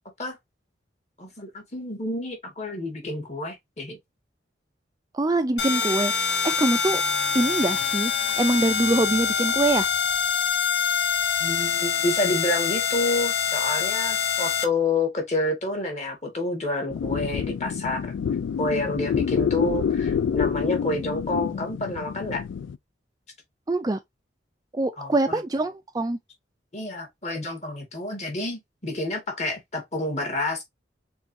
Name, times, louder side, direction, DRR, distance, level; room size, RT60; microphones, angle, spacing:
voice 1, 1.2-4.0 11.4-18.0 18.6-22.4 25.0-25.4 26.7-30.6, left 2 dB, 35° left, 1.7 m, -29 dB
voice 2, 5.1-7.0 7.3-9.9 23.7-24.0 24.7-26.2, right 2 dB, 20° right, 0.4 m, -24 dB
sound 1, 5.6-14.6, left 6 dB, 60° left, 0.8 m, -25 dB
sound 2, 16.9-22.8, left 7 dB, 90° left, 0.3 m, -27 dB
4.5 x 3.9 x 2.7 m
head